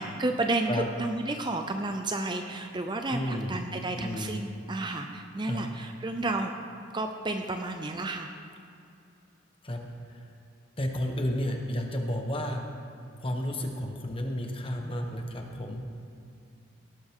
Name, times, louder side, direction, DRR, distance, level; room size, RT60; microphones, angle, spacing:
voice 1, 0.0-6.5 6.9-8.3, right 2 dB, 20° right, 5 dB, 0.5 m, -31 dB
voice 2, 3.1-3.6 3.9-4.4 5.5-5.6 9.6-9.8 10.1-10.2 10.8-12.7 13.2-15.8, left 1 dB, 25° left, 2 dB, 1.2 m, -32 dB
18.0 x 13.0 x 3.7 m, 2.5 s
head